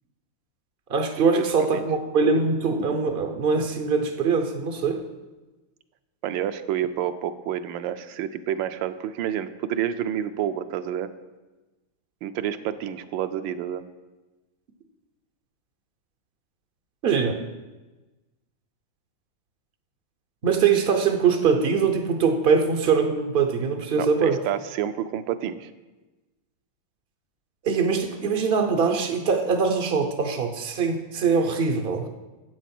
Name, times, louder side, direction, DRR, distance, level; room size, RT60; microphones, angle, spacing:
voice 1, 0.9-5.0 17.0-17.4 20.4-24.4 27.6-32.1, right 5 dB, 65° right, 4 dB, 0.5 m, -22 dB
voice 2, 6.2-11.1 12.2-13.8 24.0-25.7, right 10 dB, 80° right, 10 dB, 1.3 m, -29 dB
9.4 x 7.6 x 5.9 m, 1.1 s
omnidirectional pair, 2.1 m